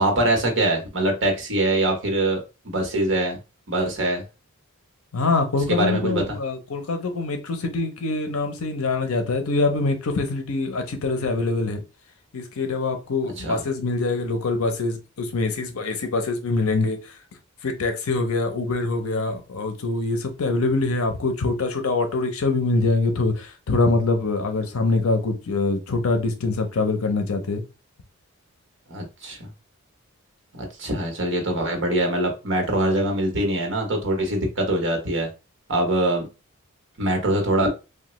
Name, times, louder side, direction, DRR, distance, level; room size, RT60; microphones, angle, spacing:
voice 1, 0.0-3.4 3.7-4.2 5.7-6.4 13.4-13.6 28.9-29.5 30.6-35.3 35.7-36.3 37.0-37.7, right 1 dB, 55° right, 0.9 m, -23 dB
voice 2, 5.1-11.8 12.3-17.2 17.6-27.6, left 3 dB, 75° left, 0.6 m, -24 dB
3.1 x 2.2 x 3.0 m
head